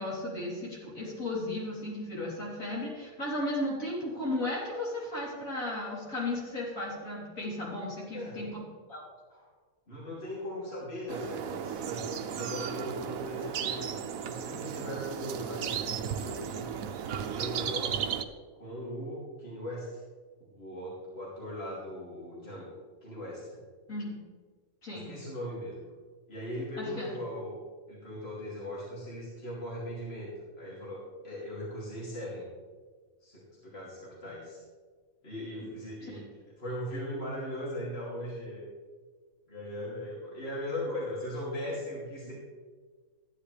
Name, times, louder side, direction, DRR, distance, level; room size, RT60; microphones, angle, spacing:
voice 1, 0.0-8.6 8.9-9.0 9.3-9.5 23.9-24.2 24.8-25.1 26.8-27.1 35.6-35.7 36.0-36.2, left 1 dB, 70° left, -6 dB, 3.9 m, -35 dB
voice 2, 8.1-8.5 9.9-13.9 14.2-16.6 16.9-18.2 18.5-20.0 20.5-22.7 23.0-23.6 24.9-25.8 26.3-27.6 27.9-32.5 33.2-34.6 35.2-36.2 36.6-38.7 39.5-42.3, equal, 45° left, -6 dB, 3.1 m, -39 dB
sound 1, 11.1-18.2, right 8 dB, 75° right, 1.1 m, -35 dB
14.5 x 10.0 x 3.3 m, 1.5 s
omnidirectional pair, 1.5 m